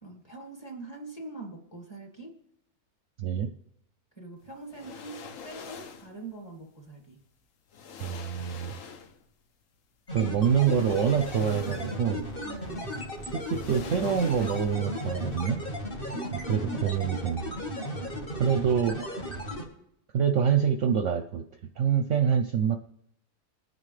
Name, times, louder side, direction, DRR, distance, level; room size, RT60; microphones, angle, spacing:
voice 1, 0.0-2.3 4.2-7.2 12.4-13.0 16.1-16.9, right 3 dB, 15° left, 1 dB, 2.2 m, -43 dB
voice 2, 3.2-3.5 8.0-8.8 10.1-12.3 13.3-15.6 16.5-17.6 18.3-19.0 20.1-21.4 21.8-22.8, right 7 dB, 60° right, 6 dB, 0.9 m, -26 dB
sound 1, 4.7-6.2 7.2-7.3 7.7-9.3 10.4-12.1 12.5-12.6 13.4-15.0 15.3-15.4, left 6 dB, 60° left, 1.1 m, -45 dB
sound 2, 10.1-19.6, equal, 35° left, 2.0 m, -35 dB
21.5 x 9.2 x 3.3 m, 0.74 s
omnidirectional pair, 1.6 m